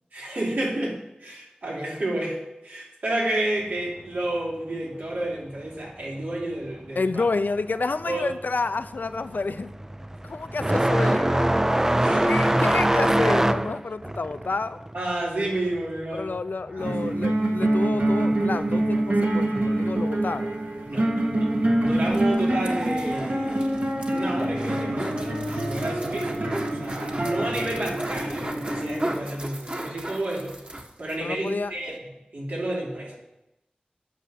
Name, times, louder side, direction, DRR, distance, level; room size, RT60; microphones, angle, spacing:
voice 1, 0.1-2.4 2.6-7.2 8.1-8.3 12.0-12.6 14.9-16.3 16.8-17.1 20.9-21.1 21.4-26.5 26.7-30.5 31.0-33.2, right 1 dB, 85° right, -3 dB, 3.1 m, -31 dB
voice 2, 7.0-9.8 10.2-11.6 12.2-14.8 16.1-20.6 21.8-21.9 31.2-31.7 32.6-32.7, left 3 dB, 80° left, 12 dB, 0.6 m, -29 dB
sound 1, 8.0-8.3 8.6-17.0 17.3-18.3 19.3-19.4 20.2-20.3 22.0-22.2, right 1 dB, 15° right, 0.3 m, -23 dB
sound 2, 16.8-29.1, right 1 dB, 65° right, 1.8 m, -25 dB
sound 3, 21.8-31.2 31.5-31.6 31.8-32.0, right 1 dB, 40° right, 1.5 m, -37 dB
9.2 x 6.3 x 7.7 m, 0.90 s
wide cardioid pair, 50°, 3 cm